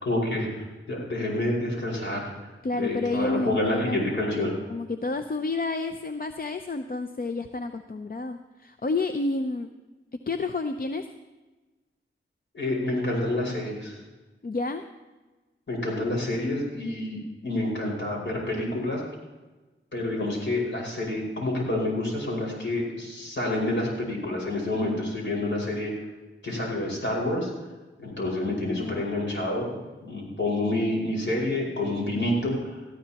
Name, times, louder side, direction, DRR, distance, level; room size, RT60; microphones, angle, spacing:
voice 1, 0.0-2.3 2.7-4.5 12.5-14.0 15.7-19.0 19.9-25.9 26.4-27.5 28.0-29.7 30.0-32.8, left 1 dB, 65° left, -3 dB, 5.4 m, -28 dB
voice 2, 2.6-4.1 4.7-9.7 10.3-11.1 14.4-14.8 28.4-29.0, left 3 dB, 45° left, 7 dB, 0.7 m, -30 dB
18.5 x 14.0 x 3.0 m, 1.2 s
wide cardioid pair, 55°, 21 cm